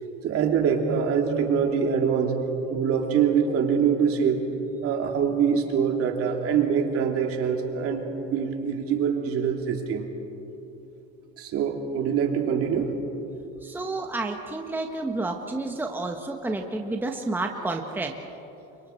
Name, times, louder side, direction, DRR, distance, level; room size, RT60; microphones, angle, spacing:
voice 1, 0.2-2.4 2.7-4.4 4.8-10.1 11.4-12.9, right 7 dB, 50° right, 3 dB, 2.8 m, -24 dB
voice 2, 13.6-18.2, right 2 dB, 5° right, 3 dB, 1.3 m, -30 dB
29.5 x 25.0 x 4.5 m, 3.0 s
cardioid pair, 120°, 29 cm